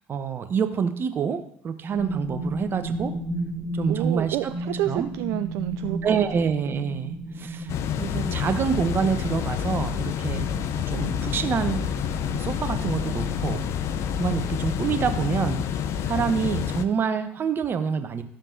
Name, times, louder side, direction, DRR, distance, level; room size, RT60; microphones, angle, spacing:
voice 1, 0.1-3.1 3.7-4.4 4.8-5.1 6.0-10.5 10.9-11.8 12.3-13.6 14.2-15.7 16.0-18.2, right 6 dB, 40° right, 9 dB, 0.9 m, -27 dB
sound 1, 1.9-13.7, right 1 dB, 5° left, 1.7 m, -34 dB
voice 2, 3.9-6.2, right 16 dB, 60° right, 10 dB, 0.3 m, -29 dB
sound 2, 7.7-16.8, left 8 dB, 50° left, 0.6 m, -28 dB
13.0 x 7.3 x 2.7 m, 0.69 s
figure-of-eight pair, 60°, 6 cm